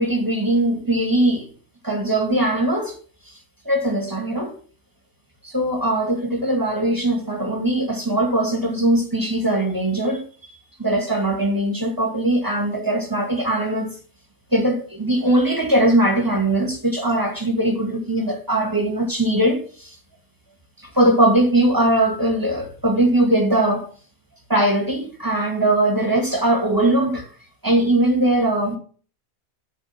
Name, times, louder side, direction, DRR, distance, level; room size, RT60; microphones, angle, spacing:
voice 1, 0.0-1.5 1.8-3.0 3.7-4.5 5.4-10.2 10.8-13.9 14.5-20.0 20.9-23.9 24.5-27.3 27.6-28.8, right 1 dB, 15° right, 2.2 m, -20 dB
11.5 x 5.1 x 6.0 m
omnidirectional pair, 1.5 m